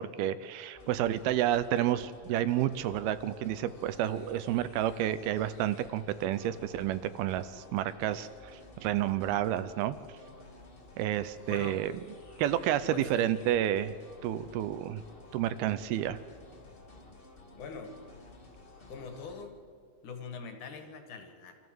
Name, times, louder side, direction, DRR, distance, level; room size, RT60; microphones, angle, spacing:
voice 1, 0.0-10.0 11.0-11.9 12.4-14.0 14.2-15.0 15.3-16.2, right 12 dB, 80° right, 14 dB, 2.4 m, -30 dB
sound 1, 0.7-19.4, left 2 dB, 30° left, 1.0 m, -53 dB
voice 2, 11.5-11.8 12.9-13.3 17.6-18.0 18.9-19.6 20.0-21.6, left 5 dB, 55° left, 6 dB, 2.9 m, -43 dB
27.5 x 14.5 x 7.9 m, 2.2 s
omnidirectional pair, 4.7 m